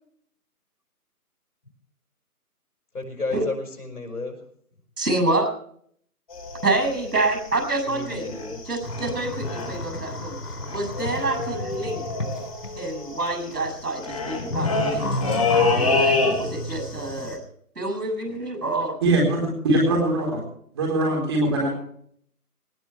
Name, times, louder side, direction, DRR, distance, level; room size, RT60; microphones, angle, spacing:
voice 1, 2.9-4.4 7.9-8.6, left 3 dB, 70° left, 4 dB, 5.3 m, -32 dB
voice 2, 5.0-5.5 6.6-8.4 8.7-10.4 10.7-12.0 12.8-15.3 15.8-17.4 17.8-19.0, right 2 dB, 90° right, 6 dB, 7.0 m, -27 dB
sound 1, 6.3-8.6 8.9-9.1 9.4-9.9 10.2-10.3 10.4-16.8 17.1-17.3, left 3 dB, 25° left, 3.3 m, -27 dB
sound 2, 8.8-13.0 13.3-13.7 14.0-17.4, left 2 dB, 90° left, 3.7 m, -31 dB
voice 3, 19.0-20.4 20.7-21.7, right 1 dB, 15° right, 0 dB, 4.1 m, -21 dB
19.5 x 17.5 x 3.4 m, 0.62 s
figure-of-eight pair, 175°, 46 cm